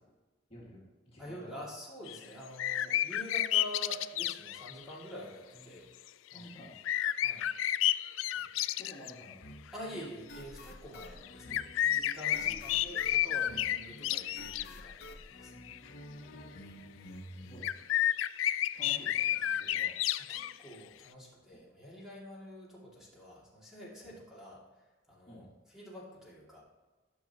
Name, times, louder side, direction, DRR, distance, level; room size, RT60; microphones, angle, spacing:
voice 1, 0.5-1.6 5.5-5.8 6.3-7.0 8.7-9.4 10.9-11.2 12.3-12.9 15.4-15.9 17.3-18.0 18.7-19.9 21.5-21.6 24.0-24.1 25.3-25.4, equal, 30° left, -5 dB, 1.9 m, -53 dB
voice 2, 1.2-6.5 7.2-7.5 9.7-15.7 16.9-17.1 18.8-19.2 20.2-26.6, equal, 5° right, -6 dB, 2.3 m, -47 dB
sound 1, 2.1-2.2 2.6-4.9 6.3-9.3 9.7-9.8 11.0-14.9 15.7-15.8 17.6-20.5, left 12 dB, 90° left, 0.3 m, -31 dB
sound 2, 9.4-17.7, equal, 55° left, 0.8 m, -50 dB
12.5 x 6.3 x 2.9 m, 1.3 s
head